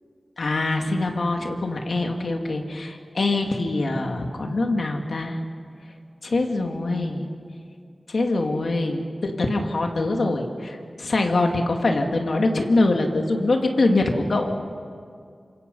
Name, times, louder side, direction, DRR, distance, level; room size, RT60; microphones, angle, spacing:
voice 1, 0.4-5.4 6.2-7.3 8.1-14.5, left 2 dB, 70° left, 3 dB, 2.4 m, -24 dB
29.0 x 26.0 x 5.5 m, 2.3 s
wide cardioid pair, 85°, 0 cm